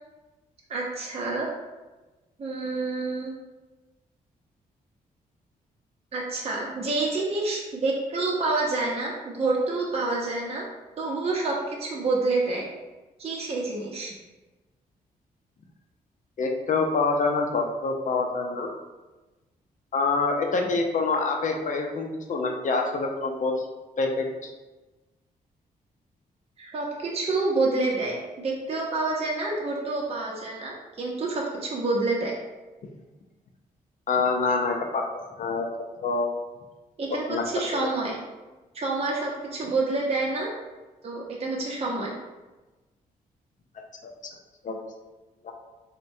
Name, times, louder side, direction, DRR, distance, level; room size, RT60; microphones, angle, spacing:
voice 1, 0.7-1.5 2.4-3.3 6.1-10.6 11.0-12.7 13.2-14.1 26.6-32.3 37.0-38.2 38.7-40.5 41.0-42.1, right 3 dB, 40° right, -3 dB, 0.6 m, -28 dB
voice 2, 16.4-18.7 19.9-23.7 24.0-24.5 34.1-35.1 35.4-35.7 36.0-36.3 37.3-37.4 37.7-37.9 44.0-44.1 44.6-44.8 45.4-45.5, left 3 dB, 50° left, 3 dB, 0.5 m, -26 dB
4.1 x 2.1 x 2.6 m, 1.2 s
cardioid pair, 70°, 16 cm